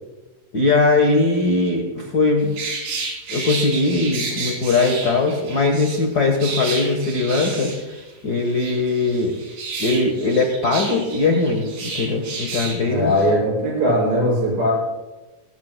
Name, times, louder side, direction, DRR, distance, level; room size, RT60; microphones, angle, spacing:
voice 1, 0.5-2.5 3.3-8.0 8.2-9.4 9.8-13.1, left 3 dB, 90° left, 2 dB, 0.8 m, -20 dB
sound 1, 2.4-6.0 6.4-8.1 8.4-12.8 13.1-13.3, right 4 dB, 70° right, 4.2 m, -31 dB
voice 2, 12.9-14.7, equal, 50° right, -4 dB, 7.2 m, -19 dB
20.0 x 16.5 x 2.2 m, 1.1 s
omnidirectional pair, 4.0 m